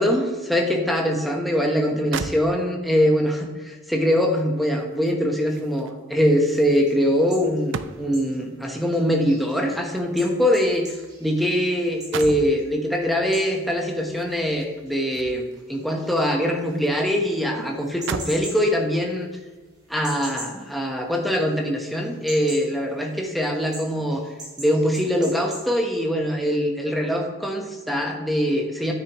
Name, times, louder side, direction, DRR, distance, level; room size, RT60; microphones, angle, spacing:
voice 1, 0.0-10.9 11.2-19.3 19.9-24.2 24.6-28.9, equal, ahead, 0 dB, 1.1 m, -23 dB
sound 1, 1.8-1.9 2.1-3.0 4.4-8.4 9.4-11.6 11.9-12.6 14.1-15.7 16.1-17.0 17.3-17.4 17.8-18.5 19.2-19.4, right 5 dB, 60° right, 0.4 m, -37 dB
sound 2, 6.5-21.6 21.9-25.7, right 1 dB, 20° right, 3.3 m, -43 dB
10.0 x 9.6 x 3.0 m, 1.3 s
head